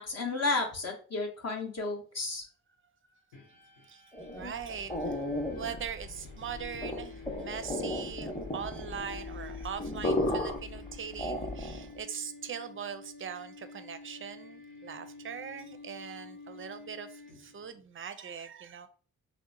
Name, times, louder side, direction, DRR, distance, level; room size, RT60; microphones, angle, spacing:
voice 1, 0.0-2.4, left 3 dB, 45° left, 1 dB, 0.6 m, -32 dB
sound 1, 3.3-17.8, left 4 dB, 80° left, 0.8 m, -50 dB
sound 2, 4.1-12.0, left 1 dB, 15° left, 0.7 m, -35 dB
voice 2, 4.3-5.2 5.5-18.9, right 7 dB, 35° right, 10 dB, 0.4 m, -41 dB
2.9 x 2.1 x 2.5 m, 0.40 s
supercardioid pair, 50°, 35 cm